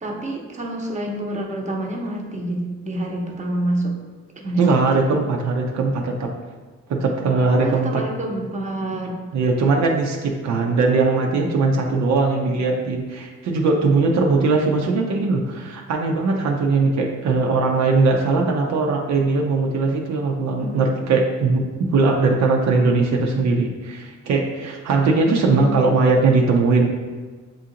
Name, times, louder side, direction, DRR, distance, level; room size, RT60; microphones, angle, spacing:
voice 1, 0.0-4.0 4.4-4.6 5.1-5.2 7.6-9.2 20.6-20.8 25.2-25.8, right 1 dB, 25° right, 0 dB, 0.8 m, -27 dB
voice 2, 4.6-6.3 6.9-8.0 9.3-21.6 21.9-27.0, right 3 dB, 65° right, 0 dB, 0.6 m, -20 dB
7.2 x 2.5 x 2.8 m, 1.4 s
cardioid pair, 80°, 30 cm